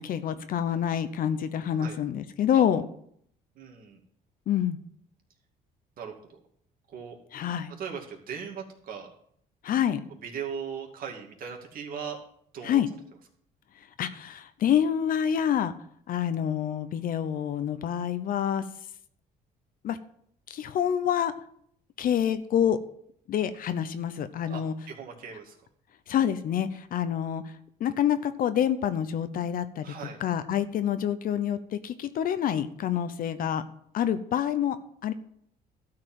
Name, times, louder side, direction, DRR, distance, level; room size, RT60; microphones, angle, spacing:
voice 1, 0.0-2.9 4.5-4.8 7.3-7.7 9.6-10.0 12.6-12.9 14.0-15.7 16.1-18.6 19.8-20.0 20.5-21.3 22.0-22.8 23.3-24.7 26.1-27.4 27.8-29.9 30.2-33.6 33.9-34.8 35.0-35.1, left 9 dB, 55° left, 11 dB, 0.8 m, -27 dB
voice 2, 3.6-4.0 6.0-6.4 6.9-7.2 7.8-9.1 10.2-12.2 12.5-12.8 24.5-25.6 29.8-30.2, right 7 dB, 55° right, 1 dB, 2.4 m, -38 dB
12.5 x 4.8 x 7.6 m, 0.67 s
cardioid pair, 110°, 17 cm